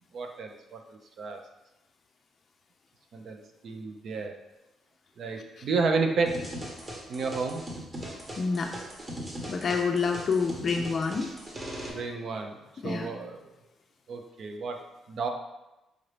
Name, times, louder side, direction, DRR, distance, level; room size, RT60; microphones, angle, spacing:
voice 1, 0.1-1.4 3.1-4.4 5.2-6.5 7.1-7.6 11.9-13.5 14.1-15.3, right 4 dB, 60° right, 4 dB, 0.5 m, -32 dB
sound 1, 6.3-11.9, right 1 dB, 30° right, 1.1 m, -39 dB
voice 2, 8.4-8.7 9.5-11.3 12.8-13.1, left 5 dB, 45° left, 3 dB, 0.4 m, -27 dB
4.8 x 2.7 x 3.3 m, 0.97 s
cardioid pair, 90°, 0 cm